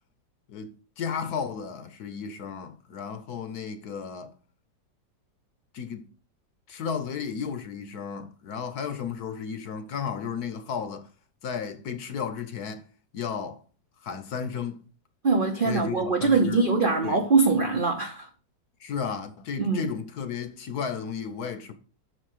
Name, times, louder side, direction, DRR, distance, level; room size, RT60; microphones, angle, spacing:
voice 1, 0.5-4.3 5.7-6.1 6.7-11.1 11.4-12.8 13.1-13.6 14.0-14.8 15.6-16.7 17.0-17.2 18.8-21.7, left 6 dB, 60° left, 1.2 m, -33 dB
voice 2, 15.2-18.3 19.6-19.8, right 4 dB, 55° right, 0.5 m, -23 dB
6.5 x 4.5 x 6.5 m
omnidirectional pair, 2.0 m